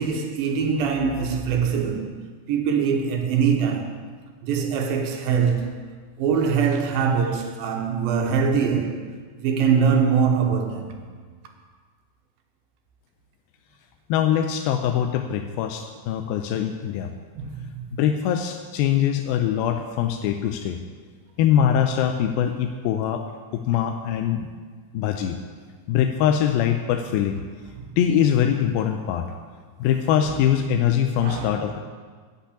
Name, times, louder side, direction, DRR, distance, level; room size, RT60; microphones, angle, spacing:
voice 1, 0.0-4.1 4.4-5.8 6.2-9.1 9.4-11.0 17.4-17.9 27.8-27.9 30.2-30.4 31.2-31.5, right 6 dB, 80° right, 2.8 m, -23 dB
voice 2, 14.1-17.1 17.9-20.8 21.4-24.5 24.9-25.4 25.9-27.4 28.0-29.3 29.8-31.8, left 9 dB, 85° left, 2.4 m, -23 dB
8.4 x 8.0 x 8.5 m
omnidirectional pair, 4.2 m